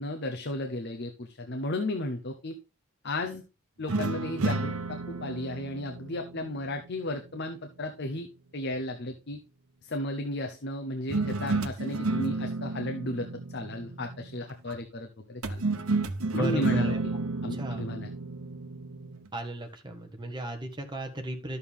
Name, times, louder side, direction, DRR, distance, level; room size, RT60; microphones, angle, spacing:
voice 1, 0.0-2.5 3.0-3.4 3.8-8.3 8.5-9.4 9.8-15.6 16.3-17.1 17.4-18.1, left 1 dB, 50° left, 5 dB, 0.9 m, -34 dB
sound 1, 3.9-7.3 11.1-14.5 15.4-19.3, right 3 dB, 85° right, 0.9 m, -32 dB
voice 2, 16.4-17.0 17.5-17.9 19.3-21.6, right 1 dB, 20° right, 4 dB, 1.5 m, -35 dB
11.0 x 6.7 x 3.5 m, 0.29 s
head